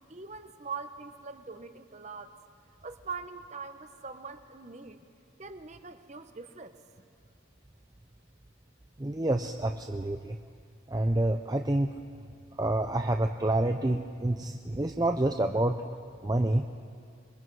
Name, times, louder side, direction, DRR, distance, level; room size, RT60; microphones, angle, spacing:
voice 1, 0.1-2.4 2.8-5.0 5.4-7.0, right 5 dB, 35° right, 9 dB, 0.9 m, -42 dB
voice 2, 9.0-10.4 10.9-11.9 12.6-15.8 16.2-16.6, right 1 dB, 20° right, 5 dB, 0.5 m, -28 dB
26.0 x 22.5 x 4.7 m, 2.2 s
head